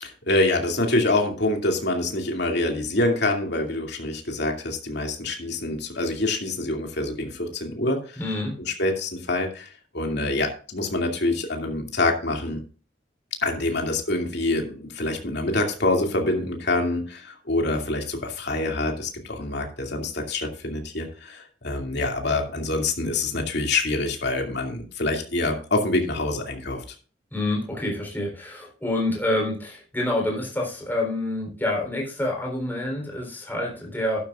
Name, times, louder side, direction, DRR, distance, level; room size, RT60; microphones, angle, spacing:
voice 1, 0.0-8.2 8.6-12.6 13.4-26.8, left 2 dB, 60° left, 2 dB, 2.5 m, -26 dB
voice 2, 8.2-8.6 27.3-34.2, left 1 dB, 10° left, -1 dB, 3.9 m, -27 dB
12.0 x 12.0 x 2.5 m, 0.37 s
head